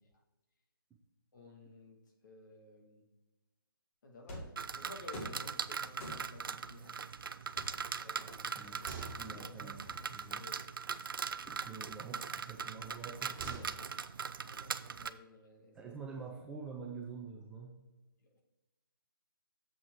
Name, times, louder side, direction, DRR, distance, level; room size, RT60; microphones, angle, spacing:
voice 1, 1.3-3.0 4.0-7.1 7.7-9.7 10.0-10.6 14.2-15.8 18.2-18.4, left 2 dB, 55° left, 1 dB, 2.2 m, -55 dB
sound 1, 4.3-4.6 5.1-5.5 6.0-6.5 7.6-8.7 9.3-10.3, equal, 30° left, 2.1 m, -47 dB
sound 2, 4.6-15.1, right 6 dB, 65° right, 0.5 m, -41 dB
sound 3, 7.6-8.1 8.4-10.0 11.3-12.2 12.8-14.1, right 4 dB, 25° right, 2.5 m, -50 dB
voice 2, 8.4-8.9 9.2-10.4 11.4-13.8 15.7-17.8, right 5 dB, 5° right, -1 dB, 0.5 m, -47 dB
7.5 x 6.0 x 4.8 m, 1.1 s
hypercardioid pair, 155°, 12 cm